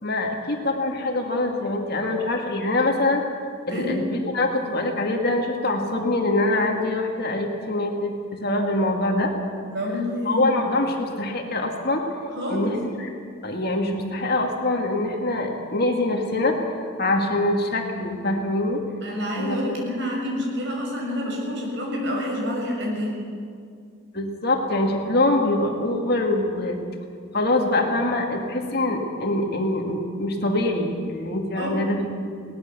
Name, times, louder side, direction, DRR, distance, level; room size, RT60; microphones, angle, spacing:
voice 1, 0.0-3.2 3.7-9.3 10.2-12.0 12.5-13.1 13.4-18.8 19.4-19.8 24.1-26.8 27.3-32.0, left 2 dB, 45° left, 2 dB, 2.2 m, -24 dB
voice 2, 3.7-4.0 9.7-10.5 12.4-12.8 19.0-23.2 31.5-31.8, left 1 dB, 55° right, -1 dB, 6.3 m, -28 dB
21.5 x 19.0 x 7.0 m, 2.3 s
head